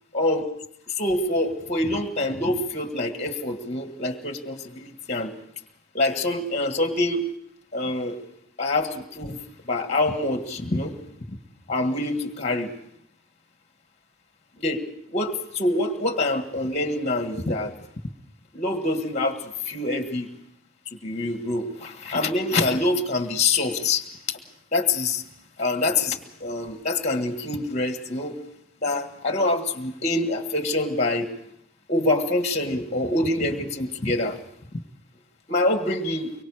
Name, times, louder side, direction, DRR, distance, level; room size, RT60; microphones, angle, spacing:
voice 1, 0.1-0.5 1.0-5.3 5.9-7.2 7.7-8.2 8.6-9.4 9.7-10.9 11.3-11.4 11.7-12.7 14.6-14.8 15.1-17.7 18.5-20.3 21.0-24.4 24.7-25.2 25.6-28.4 28.8-31.3 31.9-34.4 35.5-36.3, left 2 dB, 35° left, 7 dB, 1.6 m, -25 dB
24.0 x 23.5 x 5.0 m, 0.75 s
head